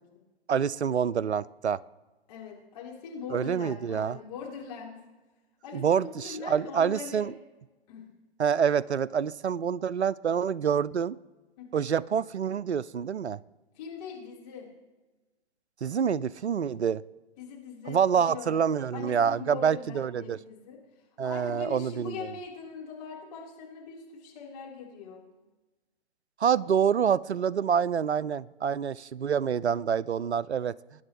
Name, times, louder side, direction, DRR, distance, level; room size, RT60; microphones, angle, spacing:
voice 1, 0.5-1.8 3.3-4.2 5.7-7.3 8.4-11.2 11.7-13.4 15.8-17.0 17.9-20.4 21.2-22.1 26.4-30.7, right 7 dB, 85° right, 21 dB, 0.5 m, -27 dB
voice 2, 2.3-5.0 5.6-7.3 7.9-8.1 11.6-11.8 13.8-14.7 17.4-18.6 18.9-20.8 21.2-25.2, left 5 dB, 35° left, -3 dB, 3.7 m, -41 dB
21.5 x 10.0 x 3.1 m, 1.2 s
figure-of-eight pair, 120°, 32 cm